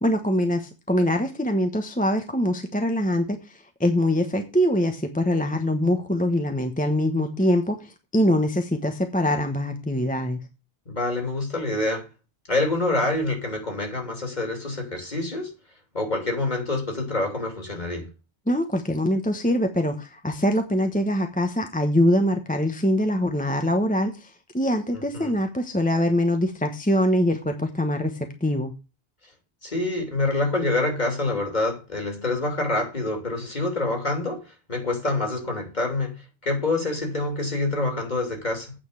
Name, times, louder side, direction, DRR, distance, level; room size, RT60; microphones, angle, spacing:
voice 1, 0.0-10.4 18.5-28.7, left 1 dB, 10° left, 0.9 m, -23 dB
voice 2, 10.9-12.1 12.5-15.5 15.9-18.1 25.1-25.3 29.6-34.4 34.7-38.7, left 2 dB, 40° left, 3.0 m, -26 dB
8.8 x 5.3 x 7.7 m
omnidirectional pair, 1.1 m